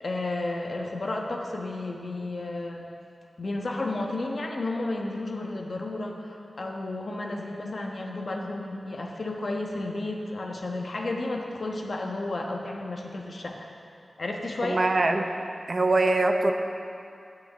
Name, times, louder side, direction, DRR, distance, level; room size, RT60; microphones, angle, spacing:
voice 1, 0.0-2.9 3.4-13.6 14.2-14.8, left 2 dB, 60° left, 1 dB, 1.1 m, -32 dB
voice 2, 14.6-15.3 15.7-16.5, right 2 dB, 45° right, 5 dB, 0.7 m, -23 dB
9.1 x 6.5 x 7.1 m, 2.5 s
wide cardioid pair, 80°, 0 cm